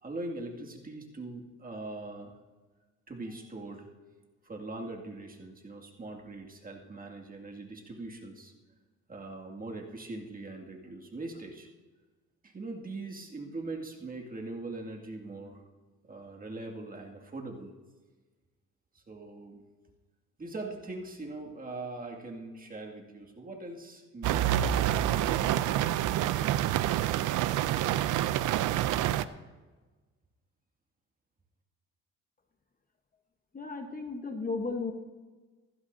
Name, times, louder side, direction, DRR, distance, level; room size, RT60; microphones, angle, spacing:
voice 1, 0.0-2.3 3.1-3.9 4.4-8.5 9.1-11.7 12.4-15.6 16.0-17.7 18.9-19.6 20.4-25.7, right 2 dB, 30° right, 0 dB, 2.3 m, -41 dB
sound 1, 24.2-29.3, right 12 dB, 85° right, 0.5 m, -27 dB
voice 2, 33.5-34.9, left 3 dB, 30° left, 5 dB, 1.2 m, -34 dB
16.0 x 15.5 x 2.7 m, 1.3 s
cardioid pair, 90°, 30 cm